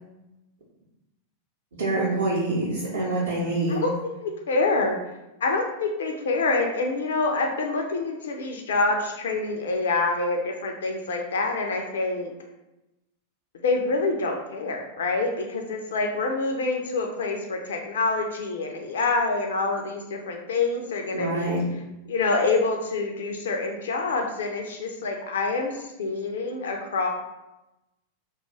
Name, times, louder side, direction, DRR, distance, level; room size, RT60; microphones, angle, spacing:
voice 1, 1.8-3.8 21.1-21.6, right 2 dB, 65° right, -8 dB, 0.6 m, -26 dB
voice 2, 3.7-5.0 5.4-12.3 13.6-21.6 22.1-27.1, left 3 dB, 60° left, 2 dB, 0.3 m, -26 dB
2.4 x 2.3 x 2.9 m, 0.95 s
figure-of-eight pair, 90°, 0 cm